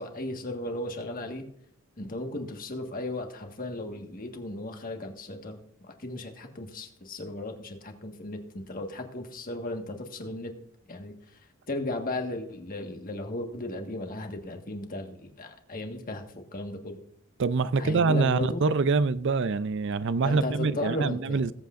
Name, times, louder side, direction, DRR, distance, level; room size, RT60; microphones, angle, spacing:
voice 1, 0.0-1.4 2.0-5.6 5.9-10.5 10.9-11.4 11.7-17.0 17.8-18.6 20.2-21.5, left 2 dB, 45° left, 1.6 m, -36 dB
voice 2, 17.4-21.5, right 4 dB, 60° right, 0.5 m, -25 dB
20.5 x 8.2 x 2.5 m
head